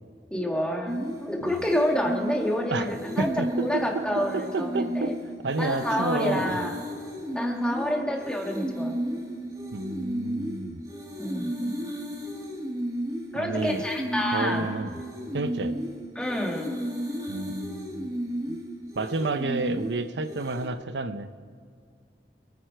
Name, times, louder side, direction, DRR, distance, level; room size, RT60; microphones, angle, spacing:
voice 1, 0.3-3.3 3.5-5.1 5.6-6.8 7.3-9.0 11.2-11.7 13.3-14.6 16.2-16.7, equal, 5° left, 0 dB, 1.9 m, -28 dB
sound 1, 0.9-20.7, equal, 20° right, 1.7 m, -33 dB
voice 2, 3.2-4.0 4.3-5.1 5.4-6.6 9.7-10.8 13.3-13.8 14.3-15.0 15.3-15.7 17.3-18.1 18.5-18.6 19.0-21.3, right 3 dB, 85° right, 11 dB, 0.7 m, -30 dB
26.0 x 9.4 x 4.6 m, 2.2 s
head